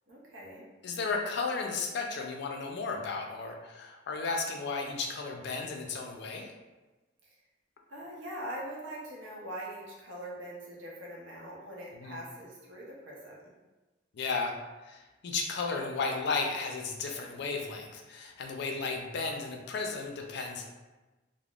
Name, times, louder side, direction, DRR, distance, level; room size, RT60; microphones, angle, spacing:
voice 1, 0.1-0.7 7.2-7.4 7.9-13.5, right 1 dB, 85° right, -4 dB, 0.7 m, -42 dB
voice 2, 0.8-6.5 12.0-12.2 14.1-14.5 14.8-20.7, left 4 dB, 65° left, 2 dB, 0.4 m, -34 dB
3.4 x 2.0 x 2.4 m, 1.2 s
head